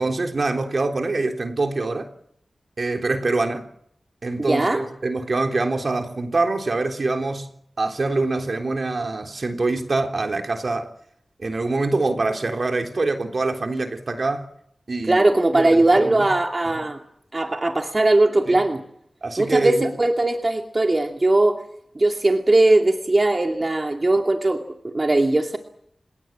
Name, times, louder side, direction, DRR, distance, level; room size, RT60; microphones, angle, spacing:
voice 1, 0.0-2.1 2.8-3.7 4.2-7.5 7.8-10.9 11.4-14.5 14.9-15.3 15.5-16.3 18.5-18.6 19.2-19.9, right 3 dB, 55° right, 3.6 m, -24 dB
voice 2, 4.4-4.8 15.1-17.0 17.3-18.8 19.4-21.6 21.9-25.6, right 2 dB, 35° right, 2.4 m, -19 dB
29.5 x 18.5 x 7.6 m
cardioid pair, 55°, 0 cm